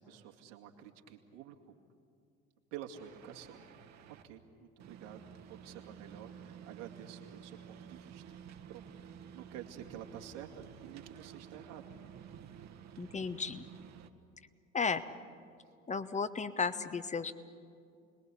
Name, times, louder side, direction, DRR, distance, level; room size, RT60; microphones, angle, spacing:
voice 1, 0.0-1.8 2.7-3.6 4.1-5.2 5.5-8.2 8.7-8.9 9.3-11.9, right 10 dB, 60° right, 2 dB, 2.4 m, -49 dB
sound 1, 2.9-4.2 4.8-14.1, right 8 dB, 40° right, 1.6 m, -52 dB
voice 2, 13.0-13.6 14.7-15.0 15.9-17.3, left 5 dB, 15° left, 12 dB, 1.1 m, -34 dB
30.0 x 21.0 x 8.4 m, 2.5 s
figure-of-eight pair, 65°, 40 cm